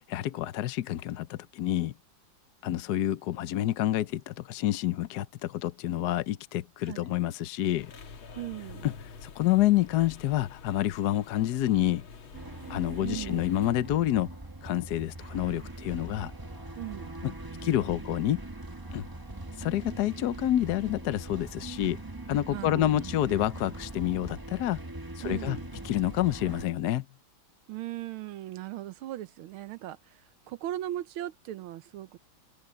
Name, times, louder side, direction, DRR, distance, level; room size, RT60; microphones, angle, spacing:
voice 1, 0.0-1.9 2.6-7.9 8.8-8.9 9.2-12.1 12.7-16.3 17.2-17.3 17.6-18.4 18.9-19.0 19.6-22.0 22.3-24.8 25.2-25.6 25.8-27.1, left 13 dB, 65° left, 1.1 m, -28 dB
Museum Ambience, 7.8-13.7, left 5 dB, 80° left, 2.5 m, -47 dB
voice 2, 8.3-8.9 13.0-13.4 16.7-17.2 22.5-23.2 25.2-25.6 27.7-32.2, right 14 dB, 85° right, 1.7 m, -38 dB
sound 1, 12.3-26.7, right 2 dB, 15° right, 1.0 m, -41 dB
Gong, 15.2-24.1 24.5-24.6, right 2 dB, 55° right, 7.7 m, -66 dB
omnidirectional pair, 2.2 m